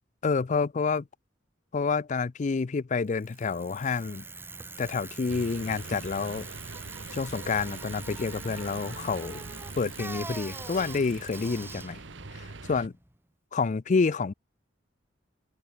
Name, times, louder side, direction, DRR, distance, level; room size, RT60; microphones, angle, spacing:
voice 1, 0.2-1.0 1.7-4.2 4.8-6.5 7.1-9.4 9.8-12.0 12.7-12.9 13.5-14.3, left 4 dB, 40° left, 0.4 m, -28 dB
Bicycle, 3.1-13.2, right 3 dB, 10° right, 1.1 m, -43 dB
sound 1, 5.3-12.9, right 3 dB, 70° right, 1.3 m, -43 dB
open air
head